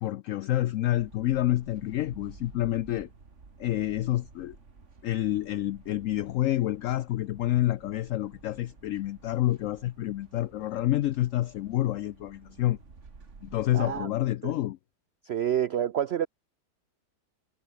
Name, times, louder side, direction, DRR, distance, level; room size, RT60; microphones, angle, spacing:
voice 1, 0.0-3.1 3.6-4.6 5.0-12.8 13.4-14.8, left 14 dB, 70° left, 0.8 m, -28 dB
sound 1, 0.9-14.1, right 4 dB, 45° right, 2.6 m, -53 dB
voice 2, 13.7-14.1 14.4-14.5 15.3-16.3, right 10 dB, 80° right, 0.5 m, -28 dB
omnidirectional pair, 1.8 m